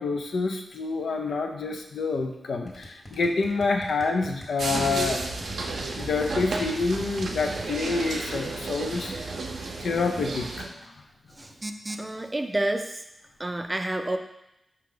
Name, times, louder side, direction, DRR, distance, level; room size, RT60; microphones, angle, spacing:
voice 1, 0.0-5.2 5.9-9.1 9.8-10.6, left 4 dB, 85° left, 4 dB, 0.5 m, -27 dB
sound 1, 2.7-7.6, left 1 dB, 40° left, 1.6 m, -42 dB
sound 2, 4.6-10.7, right 3 dB, 80° right, 0.5 m, -32 dB
voice 2, 11.3-13.0 13.4-14.2, right 1 dB, 25° right, 6 dB, 0.5 m, -29 dB
4.9 x 2.9 x 3.8 m, 0.84 s
cardioid pair, 50°, 0 cm